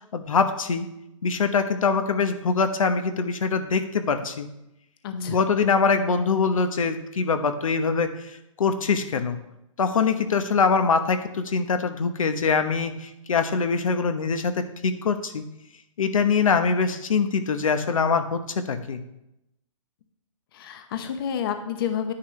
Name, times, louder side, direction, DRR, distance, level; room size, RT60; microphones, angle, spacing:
voice 1, 0.1-0.9 1.2-4.5 5.1-9.4 9.8-15.4 16.0-19.0, left 5 dB, 80° left, 8 dB, 1.1 m, -23 dB
voice 2, 5.0-5.4 20.5-22.1, left 8 dB, 45° left, 8 dB, 0.9 m, -29 dB
10.0 x 9.9 x 3.3 m, 0.86 s
hypercardioid pair, 155°, 17 cm